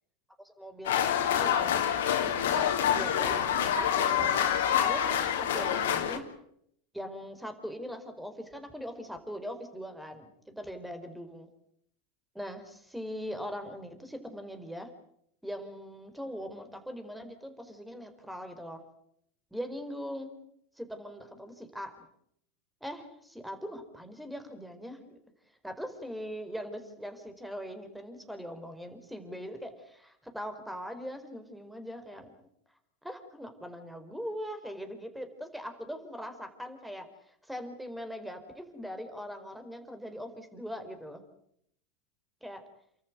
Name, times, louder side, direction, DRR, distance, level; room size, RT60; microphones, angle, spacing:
voice 1, 0.4-1.8 2.9-3.4 3.9-6.3 6.9-11.5 12.3-14.9 15.4-18.8 19.5-20.3 20.8-21.9 22.8-25.2 25.6-32.3 33.0-41.2 42.4-42.6, equal, 5° right, 8 dB, 4.8 m, -41 dB
sound 1, 0.8-6.2, left 9 dB, 70° left, 3.4 m, -27 dB
29.5 x 14.0 x 9.5 m, 0.72 s
hypercardioid pair, 90°, 0 cm